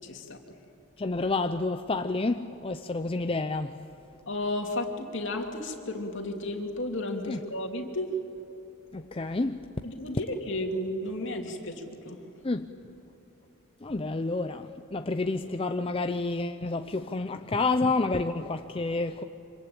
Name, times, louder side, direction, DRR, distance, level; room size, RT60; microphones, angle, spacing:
voice 1, 0.0-0.4 4.3-8.1 9.8-12.2, left 1 dB, 60° left, 2.9 m, -33 dB
voice 2, 1.0-3.8 7.3-7.4 8.9-9.7 12.4-12.7 13.8-19.2, left 3 dB, 25° left, 0.6 m, -29 dB
26.0 x 26.0 x 8.8 m
head